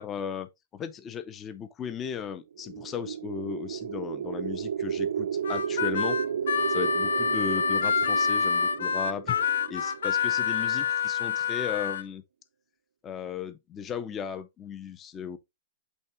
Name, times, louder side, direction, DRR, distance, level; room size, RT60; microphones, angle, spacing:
voice 1, 0.0-6.2 6.7-12.2 13.0-15.4, left 7 dB, 15° left, 0.5 m, -36 dB
sound 1, 2.5-10.7, right 8 dB, 80° right, 0.5 m, -33 dB
Harmonica, 5.4-12.0, left 6 dB, 80° left, 0.6 m, -27 dB
8.1 x 3.7 x 3.4 m
hypercardioid pair, 175°, 0 cm